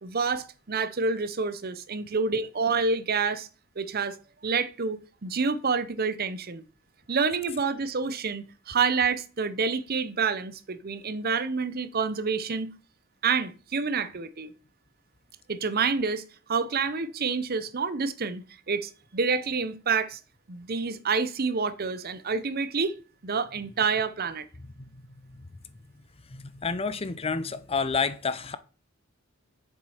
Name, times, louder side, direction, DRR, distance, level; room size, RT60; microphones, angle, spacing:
voice 1, 0.0-3.5 3.8-4.2 4.4-6.6 7.1-12.7 13.2-14.5 15.5-16.2 16.5-20.2 20.5-23.0 23.2-24.5, right 5 dB, 45° right, 0.7 m, -28 dB
voice 2, 24.6-25.5 26.3-28.6, left 5 dB, 30° left, 0.6 m, -30 dB
7.3 x 7.0 x 5.0 m
head